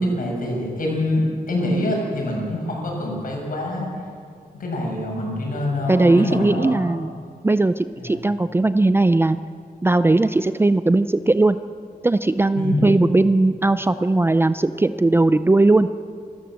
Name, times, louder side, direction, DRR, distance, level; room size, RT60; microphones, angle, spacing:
voice 1, 0.0-3.9 4.5-6.8 8.0-8.2 12.6-12.9, left 1 dB, 60° left, -1 dB, 6.9 m, -25 dB
voice 2, 5.9-7.1 7.4-9.4 9.8-11.6 12.0-15.9, right 2 dB, 15° right, 12 dB, 0.4 m, -18 dB
26.5 x 14.0 x 7.5 m, 2.2 s
wide cardioid pair, 170°, 16 cm